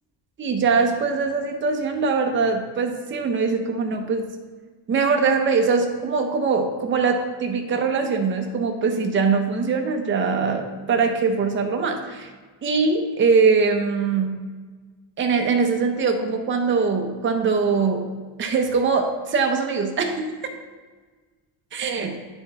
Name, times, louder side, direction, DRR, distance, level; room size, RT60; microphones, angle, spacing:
voice 1, 0.4-4.3 4.9-12.3 12.6-14.4 15.2-18.0 18.4-20.3 21.7-22.2, right 4 dB, 25° right, 3 dB, 0.6 m, -22 dB
8.8 x 4.5 x 4.1 m, 1.4 s
cardioid pair, 175°, 47 cm